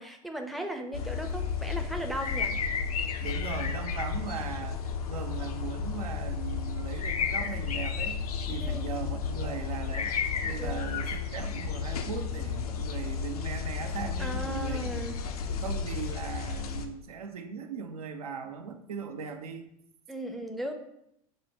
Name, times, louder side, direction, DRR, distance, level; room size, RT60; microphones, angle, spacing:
voice 1, 0.0-2.5 8.6-8.9 10.6-10.8 14.2-15.2 20.1-20.7, right 1 dB, ahead, 4 dB, 0.4 m, -36 dB
sound 1, 0.9-16.9, left 6 dB, 80° left, 0.4 m, -32 dB
voice 2, 3.2-4.8 5.1-8.2 8.5-10.1 10.4-15.1 15.5-19.7, right 6 dB, 80° right, 7 dB, 0.4 m, -38 dB
6.0 x 2.1 x 2.8 m, 0.76 s
hypercardioid pair, 85°, 19 cm